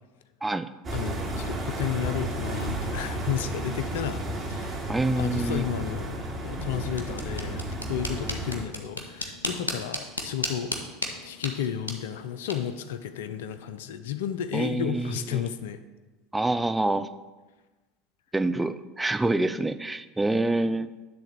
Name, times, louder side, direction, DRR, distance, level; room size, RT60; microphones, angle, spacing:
sound 1, 0.8-8.6, right 1 dB, 35° right, 2.6 m, -32 dB
voice 1, 0.9-4.9 5.2-7.6 7.9-10.8 11.2-15.8, left 9 dB, 70° left, 11 dB, 0.6 m, -33 dB
voice 2, 4.9-5.6 14.5-15.5 16.3-17.1 18.3-20.9, right 2 dB, 10° right, 10 dB, 0.5 m, -26 dB
sound 2, 6.8-13.8, left 1 dB, 90° left, 1.1 m, -37 dB
10.5 x 3.9 x 6.8 m, 1.2 s
figure-of-eight pair, 75°, 0 cm